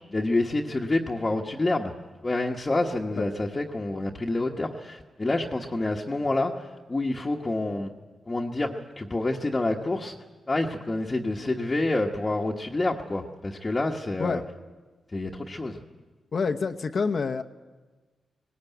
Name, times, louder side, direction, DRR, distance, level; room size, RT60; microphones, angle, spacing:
voice 1, 0.1-1.9 2.2-7.9 8.3-10.1 10.5-14.4 15.1-15.8, left 2 dB, 25° left, -2 dB, 1.3 m, -28 dB
voice 2, 16.3-17.4, left 4 dB, 50° left, 7 dB, 0.9 m, -27 dB
18.5 x 18.0 x 9.2 m, 1.3 s
cardioid pair, 95°, 0 cm